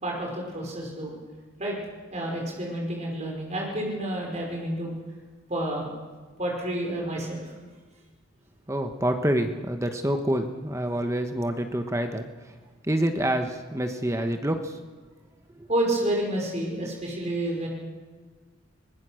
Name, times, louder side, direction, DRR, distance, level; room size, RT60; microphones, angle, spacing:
voice 1, 0.0-1.2 1.6-1.8 2.1-4.9 5.5-5.9 6.4-7.4 15.7-17.7, right 1 dB, 35° right, -1 dB, 5.2 m, -29 dB
voice 2, 8.7-12.5 12.8-14.8 15.6-15.7, right 1 dB, 15° right, 6 dB, 1.2 m, -27 dB
23.5 x 20.5 x 6.5 m, 1.4 s
head